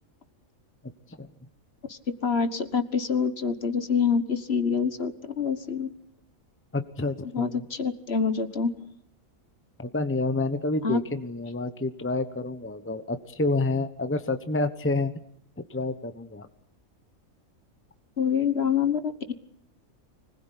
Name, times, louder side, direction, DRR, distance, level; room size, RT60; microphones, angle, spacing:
voice 1, 1.9-5.9 7.3-8.7 10.8-11.0 18.2-19.3, left 6 dB, 50° left, 11 dB, 1.6 m, -26 dB
voice 2, 6.7-7.6 9.8-15.1 15.6-16.5, left 2 dB, 10° left, 10 dB, 1.1 m, -29 dB
25.0 x 20.0 x 10.0 m, 0.71 s
omnidirectional pair, 1.4 m